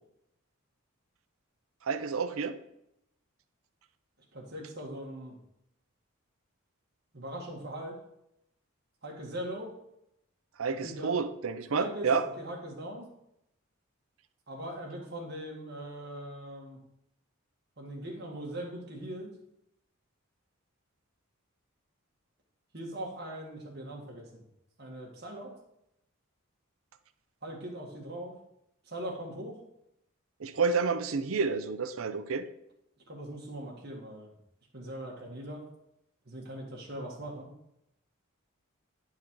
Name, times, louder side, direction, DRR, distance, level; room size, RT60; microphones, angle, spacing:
voice 1, 1.8-2.6 10.6-12.3 30.4-32.5, right 5 dB, 75° right, 12 dB, 0.6 m, -29 dB
voice 2, 4.3-5.4 7.1-8.0 9.0-9.7 10.8-11.2 11.7-13.1 14.5-16.8 17.8-19.3 22.7-24.4 24.8-25.5 27.4-28.3 28.9-29.6 33.1-34.3 34.7-35.7 36.3-37.5, right 1 dB, 50° right, -1 dB, 1.8 m, -40 dB
10.0 x 4.8 x 4.6 m, 0.80 s
head